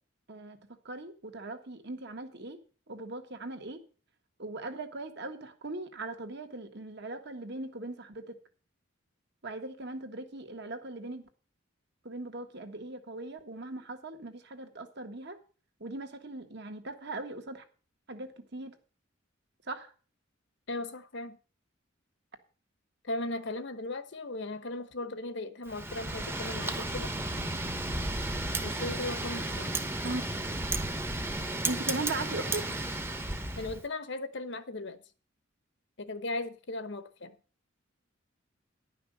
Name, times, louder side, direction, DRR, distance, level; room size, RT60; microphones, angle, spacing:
voice 1, 0.3-2.6 2.9-3.8 4.4-8.4 9.4-11.2 12.0-15.4 15.8-17.6 18.1-18.7 19.6-19.9 30.0-30.2 31.6-32.7, right 2 dB, 60° right, 1.6 m, -39 dB
voice 2, 20.7-21.4 23.0-27.1 28.6-29.7 33.6-35.0 36.0-37.3, left 2 dB, 60° left, 1.1 m, -37 dB
Wind, 25.7-33.8, right 2 dB, 10° right, 0.9 m, -33 dB
11.0 x 5.8 x 7.8 m
head